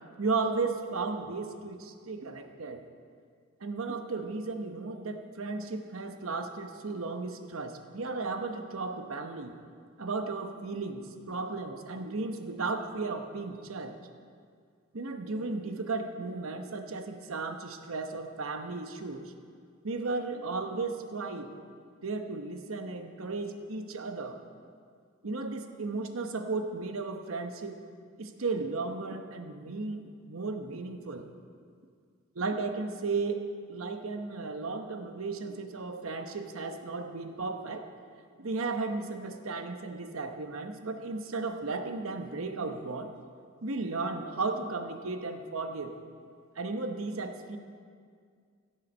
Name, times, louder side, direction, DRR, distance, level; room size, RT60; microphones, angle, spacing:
voice 1, 0.2-2.8 3.6-9.5 10.0-13.9 14.9-19.3 19.8-21.5 22.0-24.4 25.2-27.8 28.2-31.3 32.3-37.9 38.4-43.1 43.6-46.0 46.6-47.6, right 3 dB, 85° right, 6 dB, 0.9 m, -35 dB
17.0 x 7.3 x 5.4 m, 2.1 s
head